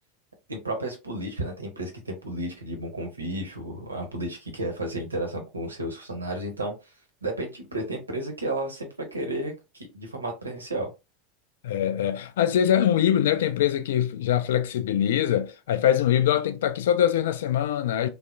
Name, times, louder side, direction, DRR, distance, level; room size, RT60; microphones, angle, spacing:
voice 1, 0.5-6.7 7.2-10.9, right 1 dB, 80° right, 0.9 m, -32 dB
voice 2, 11.6-18.1, left 10 dB, 60° left, 0.4 m, -23 dB
3.3 x 2.4 x 2.5 m
figure-of-eight pair, 80°, 0 cm